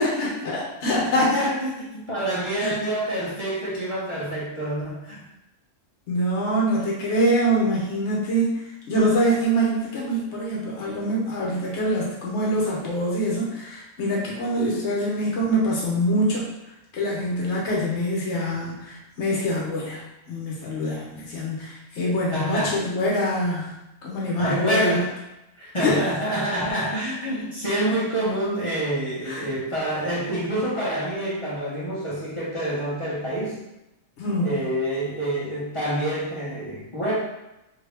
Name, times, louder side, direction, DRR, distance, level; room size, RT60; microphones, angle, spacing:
voice 1, 0.0-1.5 2.6-2.8 6.1-16.5 16.9-23.7 24.0-25.0 25.8-26.0 29.2-29.5 34.2-34.6, equal, 60° left, -4 dB, 1.2 m, -24 dB
voice 2, 1.1-5.2 22.3-22.8 24.4-25.1 25.6-33.6 34.4-37.1, right 1 dB, 25° left, -8 dB, 0.9 m, -27 dB
2.9 x 2.8 x 3.3 m, 0.93 s
omnidirectional pair, 1.4 m